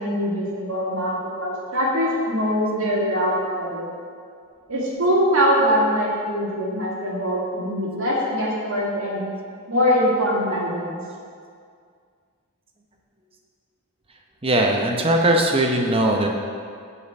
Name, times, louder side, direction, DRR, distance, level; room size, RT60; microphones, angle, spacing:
voice 1, 0.0-3.9 4.7-9.2 9.7-11.0, equal, 65° right, -5 dB, 2.3 m, -22 dB
voice 2, 14.4-16.3, right 1 dB, 25° right, 1 dB, 0.8 m, -19 dB
7.0 x 5.2 x 7.0 m, 2.2 s
head